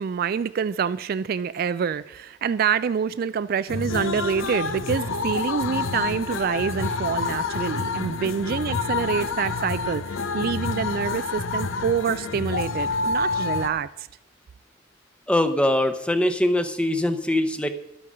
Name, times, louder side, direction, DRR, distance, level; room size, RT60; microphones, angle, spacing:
voice 1, 0.0-14.1, right 6 dB, 50° right, 0.3 m, -26 dB
sound 1, 3.7-13.7, left 4 dB, 90° left, 0.8 m, -28 dB
voice 2, 15.3-17.7, left 1 dB, 5° left, 0.7 m, -22 dB
11.5 x 8.5 x 6.6 m
head